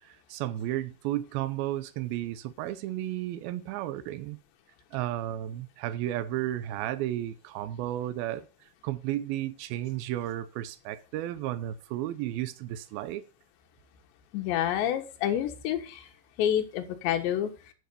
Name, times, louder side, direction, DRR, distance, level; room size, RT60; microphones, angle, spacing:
voice 1, 0.0-4.4 4.9-13.2, right 13 dB, 85° right, 2.1 m, -33 dB
voice 2, 14.3-16.1 16.4-17.7, left 10 dB, 75° left, 3.5 m, -28 dB
11.0 x 6.5 x 6.8 m
omnidirectional pair, 5.2 m